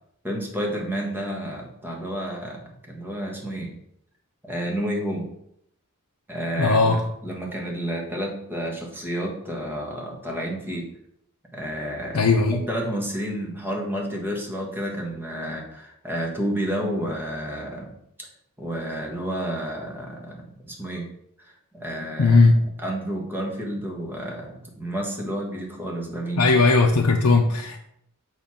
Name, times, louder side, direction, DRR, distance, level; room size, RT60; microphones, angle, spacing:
voice 1, 0.2-3.7 4.4-5.3 6.3-10.9 11.5-12.2 12.5-18.3 18.6-21.1 21.4-22.4 22.8-26.5, equal, 10° right, -1 dB, 1.3 m, -30 dB
voice 2, 6.6-7.0 12.1-12.6 22.2-22.6 26.4-27.8, left 3 dB, 70° left, 0 dB, 0.6 m, -18 dB
6.7 x 3.2 x 5.7 m, 0.74 s
head